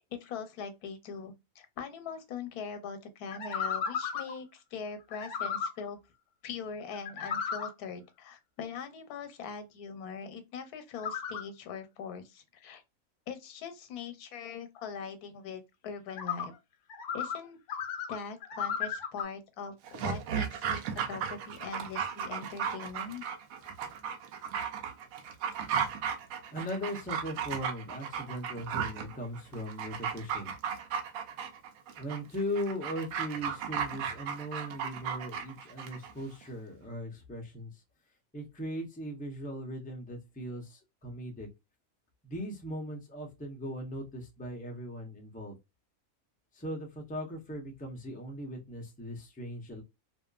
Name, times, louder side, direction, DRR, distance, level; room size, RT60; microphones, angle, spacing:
voice 1, 0.1-6.0 6.4-12.8 13.3-16.5 17.1-17.6 18.1-20.8 21.1-23.2, left 6 dB, 90° left, 1.2 m, -41 dB
sound 1, 3.3-4.3 5.1-5.7 6.9-7.7 11.0-11.4 16.1-16.5 16.9-17.4 17.7-19.2, left 7 dB, 65° left, 0.9 m, -34 dB
Dog, 19.8-36.1 36.4-36.5, right 7 dB, 75° right, 1.0 m, -35 dB
voice 2, 26.5-30.5 32.0-37.8 38.3-41.5 42.2-45.6 46.5-49.8, equal, 10° left, 0.4 m, -39 dB
2.6 x 2.5 x 2.3 m
omnidirectional pair, 1.6 m